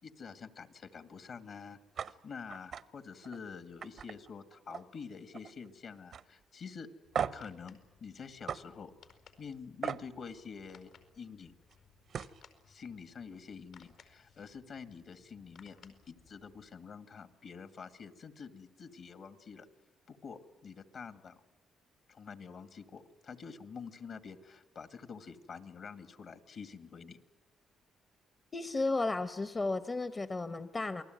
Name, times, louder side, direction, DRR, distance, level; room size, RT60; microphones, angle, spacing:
voice 1, 0.0-6.9 7.3-8.9 9.4-10.9 11.2-11.6 12.7-19.7 20.1-21.4 22.1-27.2, left 5 dB, 55° left, 11 dB, 2.1 m, -47 dB
sound 1, 2.0-2.1 2.5-2.8 3.2-3.4 3.8-5.0 5.3-5.7 6.1-6.2 7.1-7.5 8.5-8.6 9.8-10.0 11.7-11.8 12.1-12.4, right 7 dB, 60° right, 0.8 m, -37 dB
sound 2, 7.0-16.7, left 6 dB, 80° left, 4.8 m, -63 dB
voice 2, 28.5-31.0, left 3 dB, 25° left, 12 dB, 0.9 m, -33 dB
28.5 x 20.0 x 9.4 m, 1.1 s
cardioid pair, 90°, 0 cm